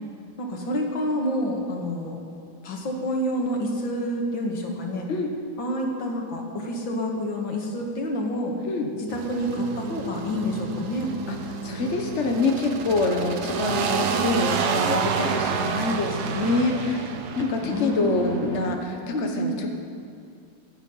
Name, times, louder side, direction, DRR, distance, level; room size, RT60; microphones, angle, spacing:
voice 1, 0.4-2.2 2.6-5.1 5.6-8.5 8.9-11.1 17.6-18.7 19.1-19.6, equal, 90° left, 0 dB, 2.7 m, -28 dB
sound 1, 9.1-18.8, right 6 dB, 65° right, 1.3 m, -29 dB
voice 2, 11.6-19.7, left 3 dB, 40° left, 3 dB, 1.5 m, -26 dB
25.0 x 8.9 x 5.6 m, 2.4 s
omnidirectional pair, 2.0 m